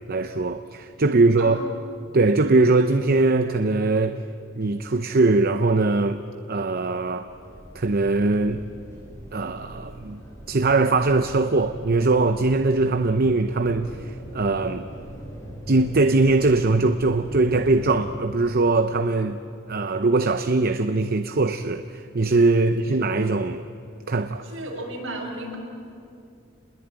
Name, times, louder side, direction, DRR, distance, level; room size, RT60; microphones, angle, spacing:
voice 1, 0.1-1.6 2.1-4.2 4.6-6.2 6.5-7.3 7.7-8.6 9.3-10.2 10.5-14.9 15.7-19.4 19.7-23.6 24.1-24.4, right 3 dB, 50° right, 0.7 m, -21 dB
sound 1, 7.3-18.1, equal, 15° left, 7.0 m, -40 dB
voice 2, 24.4-25.6, right 1 dB, 65° right, 6.0 m, -33 dB
27.5 x 21.5 x 9.0 m
head